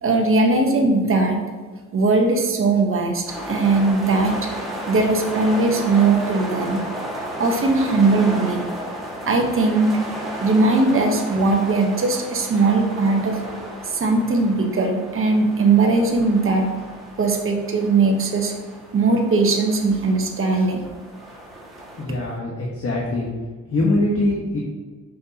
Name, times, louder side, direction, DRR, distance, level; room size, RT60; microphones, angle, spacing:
voice 1, 0.0-1.4 1.9-4.4 4.9-6.8 7.4-8.6 9.3-9.9 10.4-13.4 13.8-16.7 17.2-18.5 18.9-20.8, right 3 dB, 45° right, 3 dB, 1.3 m, -19 dB
sound 1, 3.3-22.0, right 1 dB, ahead, 2.0 m, -34 dB
voice 2, 22.0-23.3 23.6-24.6, left 2 dB, 50° left, -3 dB, 1.6 m, -23 dB
7.7 x 6.6 x 3.0 m, 1.4 s
cardioid pair, 90°, 30 cm